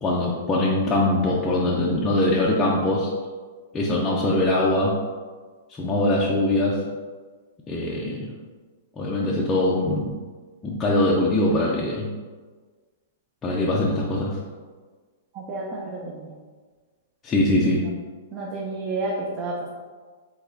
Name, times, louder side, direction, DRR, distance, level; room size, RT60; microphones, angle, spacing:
voice 1, 0.0-3.1 3.7-5.0 5.7-6.8 7.7-8.3 9.0-10.1 10.6-12.1 13.4-14.4 17.2-17.8, left 1 dB, 15° left, -6 dB, 0.5 m, -22 dB
voice 2, 15.3-16.3 17.8-17.9 18.3-19.7, right 2 dB, 35° right, -3 dB, 0.7 m, -31 dB
4.8 x 3.8 x 2.7 m, 1.5 s
hypercardioid pair, 145°, 0 cm